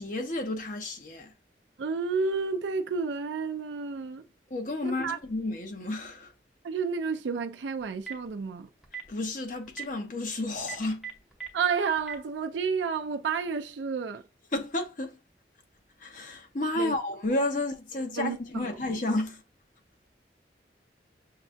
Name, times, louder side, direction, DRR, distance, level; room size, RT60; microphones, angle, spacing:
voice 1, 0.0-1.3 4.5-6.3 9.1-11.1 14.5-15.2 16.0-19.4, left 2 dB, 45° left, 0.8 m, -31 dB
voice 2, 1.8-4.2 4.8-5.2 6.6-8.7 11.5-14.2 16.8-17.0 18.2-18.8, right 5 dB, 85° right, 0.4 m, -30 dB
Telephone, 7.8-8.3 8.8-9.1 9.7-9.8 10.6-11.5 12.0-12.2, right 7 dB, ahead, 0.7 m, -37 dB
6.6 x 2.3 x 2.5 m
head